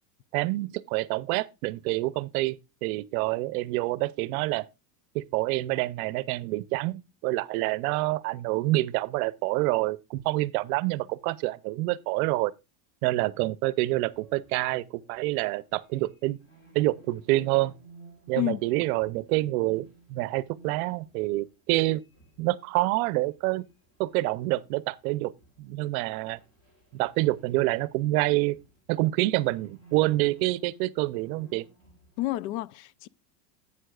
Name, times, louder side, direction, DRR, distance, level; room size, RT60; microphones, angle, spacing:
voice 1, 0.3-4.7 5.1-12.5 13.0-16.4 16.7-17.7 18.3-22.0 22.4-23.6 24.0-25.3 25.6-26.4 26.9-28.6 28.9-31.6, right 19 dB, 60° right, 0.7 m, -27 dB
sound 1, 14.0-25.0 25.4-32.3, right 4 dB, 30° left, 3.2 m, -56 dB
voice 2, 32.2-33.1, left 16 dB, 80° left, 0.6 m, -30 dB
11.5 x 8.6 x 2.3 m
supercardioid pair, 150°, 48 cm